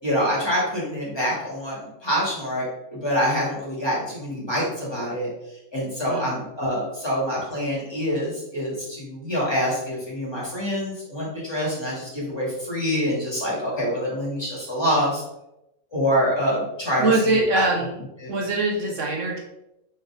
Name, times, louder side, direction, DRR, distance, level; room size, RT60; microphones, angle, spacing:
voice 1, 0.0-2.7 2.9-5.3 5.7-15.2 15.9-17.6 18.2-18.3, equal, 20° left, -6 dB, 2.7 m, -26 dB
voice 2, 17.0-18.0 18.3-19.4, right 2 dB, 65° right, -1 dB, 1.3 m, -23 dB
7.0 x 4.4 x 3.7 m, 0.87 s
omnidirectional pair, 1.4 m